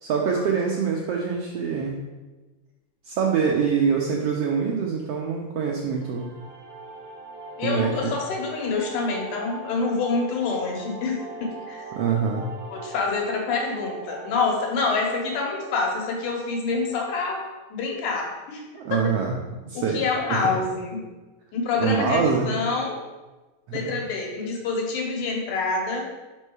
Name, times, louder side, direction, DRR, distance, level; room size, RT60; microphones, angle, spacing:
voice 1, 0.0-2.0 3.0-6.3 7.6-7.9 11.9-12.5 18.7-19.4 19.6-20.0 20.3-20.5 21.8-22.5 23.7-23.8, right 6 dB, 90° right, 0 dB, 1.4 m, -24 dB
sound 1, 5.9-17.0, right 3 dB, 65° right, 0.8 m, -40 dB
voice 2, 7.6-11.8 12.7-17.4 17.7-18.6 18.9-19.1 19.7-21.0 21.5-23.0 23.7-26.0, left 4 dB, 85° left, 0 dB, 2.7 m, -27 dB
5.4 x 5.3 x 4.7 m, 1.2 s
omnidirectional pair, 3.4 m